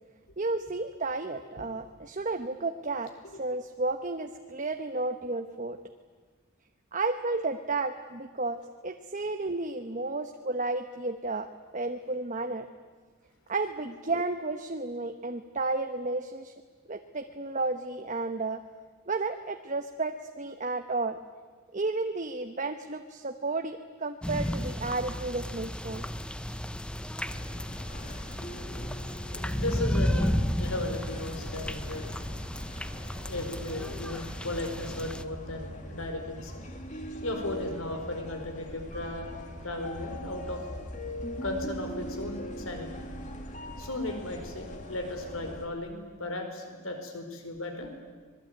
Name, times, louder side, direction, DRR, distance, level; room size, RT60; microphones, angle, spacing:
voice 1, 0.4-5.8 6.9-12.7 13.5-16.5 16.9-18.6 19.1-21.2 21.7-26.1, right 3 dB, 35° right, 6 dB, 1.1 m, -32 dB
sound 1, 24.2-35.2, equal, 5° left, 0.7 m, -33 dB
sound 2, 27.2-45.7, equal, 35° left, 2.9 m, -41 dB
voice 2, 29.3-32.1 33.2-36.6 37.2-39.3 39.6-40.6 41.4-43.0 43.8-47.9, left 1 dB, 75° left, 5 dB, 4.6 m, -36 dB
25.5 x 21.0 x 9.5 m, 1.5 s
head